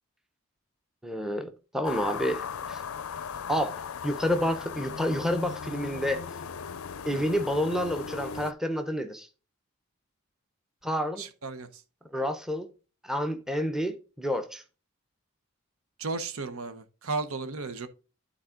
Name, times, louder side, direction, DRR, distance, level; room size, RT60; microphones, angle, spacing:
voice 1, 1.0-2.8 3.5-6.2 7.1-9.3 10.8-11.3 12.1-12.7 13.0-14.6, equal, ahead, 0.7 m, -29 dB
sound 1, 1.8-8.5, left 6 dB, 75° left, 0.5 m, -37 dB
voice 2, 11.2-11.8 16.0-17.9, right 3 dB, 75° right, 0.9 m, -34 dB
11.5 x 4.2 x 3.7 m
head